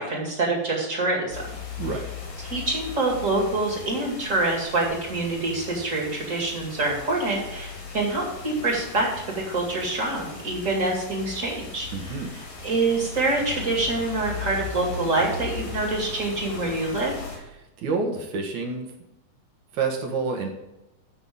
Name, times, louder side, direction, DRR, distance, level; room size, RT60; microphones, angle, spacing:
voice 1, 0.0-1.4 2.4-9.1 9.5-11.9 12.6-17.1, right 2 dB, 25° right, -1 dB, 2.1 m, -26 dB
sound 1, 1.3-17.4, left 4 dB, 70° left, 4.6 m, -38 dB
voice 2, 11.9-12.3 17.8-18.9 19.7-20.5, right 4 dB, 65° right, 2 dB, 2.8 m, -28 dB
14.5 x 5.9 x 3.7 m, 0.97 s
omnidirectional pair, 3.9 m